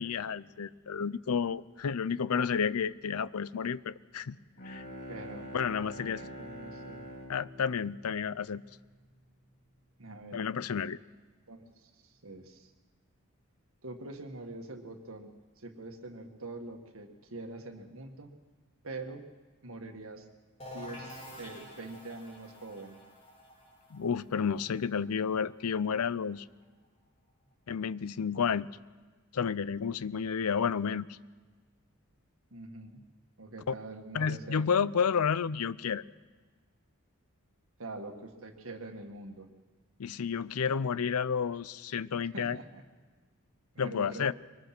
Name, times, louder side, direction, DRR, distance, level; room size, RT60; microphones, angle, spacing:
voice 1, 0.0-4.4 4.7-4.8 5.5-6.2 7.3-8.6 10.3-11.0 23.9-26.5 27.7-28.7 29.3-31.2 33.7-33.8 34.1-36.0 40.0-42.6 43.8-44.3, left 6 dB, 85° left, 19 dB, 0.5 m, -31 dB
Bowed string instrument, 4.4-9.1, equal, 45° left, 3.3 m, -45 dB
voice 2, 5.1-5.5 6.2-7.0 10.0-10.4 10.8-10.9 11.5-12.7 13.8-18.3 18.8-19.3 19.6-20.3 20.7-23.0 32.5-33.0 33.4-34.9 37.8-39.5 42.3-42.8 43.7-44.3, right 2 dB, 70° right, 4 dB, 1.9 m, -44 dB
sound 1, 20.6-26.2, equal, 25° left, 4.8 m, -49 dB
23.5 x 20.0 x 6.0 m, 1.4 s
head